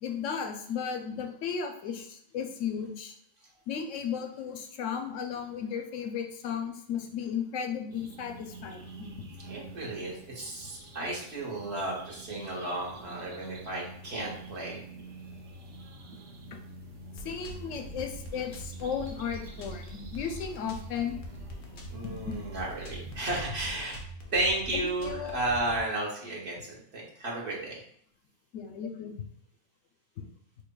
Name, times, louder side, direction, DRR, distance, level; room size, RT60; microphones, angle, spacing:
voice 1, 0.0-3.1 3.7-9.1 16.5-16.6 17.2-21.2 22.0-22.4 24.7-25.5 28.5-29.2 30.2-30.3, left 7 dB, 85° left, 4 dB, 0.9 m, -35 dB
sound 1, 7.9-23.4, right 2 dB, 90° right, 1.0 m, -48 dB
voice 2, 9.4-14.8 21.9-24.0 24.3-27.8, right 2 dB, 60° right, -3 dB, 1.2 m, -33 dB
sound 2, 17.1-25.8, right 1 dB, 60° left, 0.7 m, -43 dB
4.6 x 2.8 x 2.2 m, 0.65 s
omnidirectional pair, 1.3 m